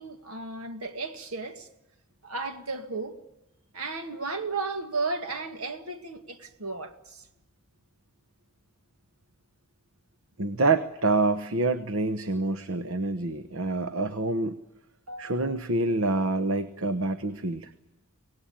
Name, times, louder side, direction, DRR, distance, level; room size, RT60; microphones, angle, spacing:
voice 1, 0.0-1.7 2.2-3.2 3.7-7.3 15.1-15.5, right 3 dB, 85° right, 2.1 m, -34 dB
voice 2, 10.4-14.6 15.2-17.7, right 2 dB, 70° right, 1.0 m, -27 dB
24.5 x 19.0 x 8.8 m
head